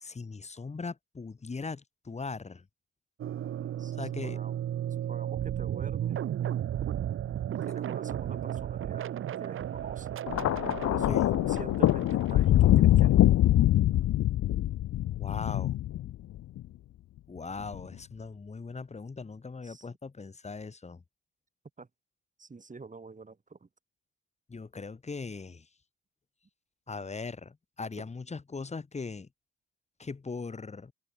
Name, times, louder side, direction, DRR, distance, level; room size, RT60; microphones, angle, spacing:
voice 1, 0.0-2.6 4.0-4.4 11.1-11.3 15.1-15.7 17.3-21.0 24.5-25.6 26.9-29.3 30.0-30.9, left 4 dB, 20° left, 1.2 m, -39 dB
sound 1, 3.2-12.8, right 10 dB, 45° right, 0.6 m, -34 dB
voice 2, 3.8-4.6 4.9-6.2 7.4-9.1 9.4-10.2 10.8-13.3 19.6-19.9 21.8-21.9 22.4-23.7 27.0-27.1 28.0-28.1, right 4 dB, 25° right, 3.1 m, -46 dB
Thunder, 10.3-16.6 17.6-17.9, left 13 dB, 55° left, 0.5 m, -24 dB
cardioid pair, 90°, 30 cm